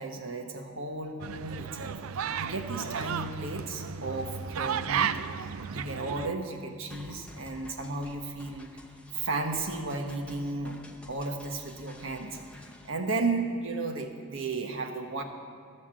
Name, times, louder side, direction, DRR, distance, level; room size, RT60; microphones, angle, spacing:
voice 1, 0.0-5.2 5.7-8.7 9.1-10.8 11.1-12.4 12.8-15.2, right 3 dB, 65° right, 4 dB, 1.2 m, -34 dB
sound 1, 1.2-6.3, right 7 dB, 90° right, 0.4 m, -33 dB
sound 2, 6.9-12.9, left 1 dB, 5° left, 0.7 m, -51 dB
13.0 x 6.6 x 7.6 m, 2.3 s
head